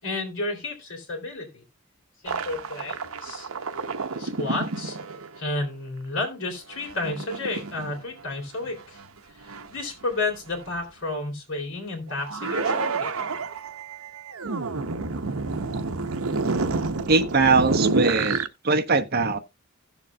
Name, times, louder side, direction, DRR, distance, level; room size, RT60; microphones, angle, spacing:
voice 1, 0.0-1.6 2.2-3.5 4.2-5.0 5.4-9.0 9.5-13.1, left 2 dB, 65° left, 3.8 m, -31 dB
sound 1, 2.3-5.4 6.7-8.2 8.6-9.1 9.4-10.0 10.7-10.8 12.1-18.5, right 3 dB, 80° right, 0.9 m, -29 dB
voice 2, 17.1-18.4 18.6-19.4, right 3 dB, 45° right, 1.0 m, -21 dB
17.0 x 7.1 x 2.3 m
head